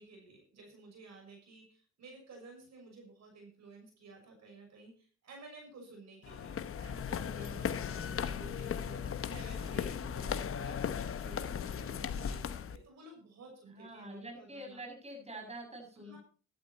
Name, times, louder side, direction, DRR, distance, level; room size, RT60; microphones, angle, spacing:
voice 1, 0.0-14.8 16.0-16.2, right 3 dB, 60° right, 1 dB, 6.5 m, -53 dB
sound 1, 6.2-12.8, left 7 dB, 45° left, 1.0 m, -37 dB
voice 2, 7.8-8.3 13.7-16.2, right 1 dB, 20° right, 1 dB, 7.5 m, -46 dB
13.0 x 12.0 x 4.4 m, 0.38 s
cardioid pair, 90°, 30 cm